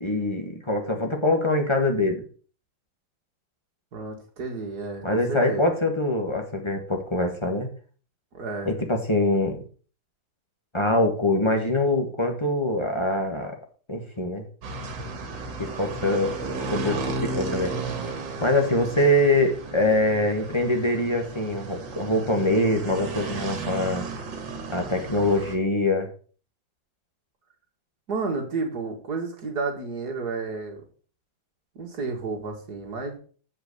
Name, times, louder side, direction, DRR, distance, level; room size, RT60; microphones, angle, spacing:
voice 1, 0.0-2.2 5.0-7.7 8.6-9.6 10.7-13.6 13.9-14.4 15.6-16.3 16.7-17.7 18.4-24.1 24.7-26.1, left 1 dB, 15° left, 3 dB, 1.5 m, -24 dB
voice 2, 3.9-5.6 8.3-8.7 28.1-30.8 31.8-33.2, right 4 dB, 55° right, 2 dB, 2.3 m, -31 dB
sound 1, 14.6-25.6, right 3 dB, 70° right, 2.2 m, -34 dB
7.5 x 5.5 x 6.6 m, 0.42 s
omnidirectional pair, 2.1 m